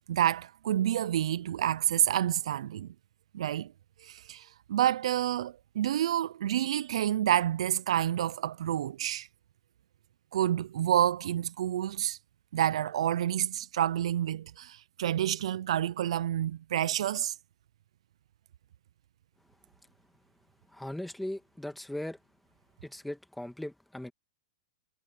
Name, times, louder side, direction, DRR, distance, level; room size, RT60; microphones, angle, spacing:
voice 1, 0.1-2.9 3.3-3.7 4.0-9.3 10.3-12.2 12.5-17.3, right 11 dB, 75° right, 0.4 m, -29 dB
voice 2, 20.7-22.2 22.8-24.1, left 1 dB, ahead, 1.8 m, -38 dB
supercardioid pair, 160°, 3 cm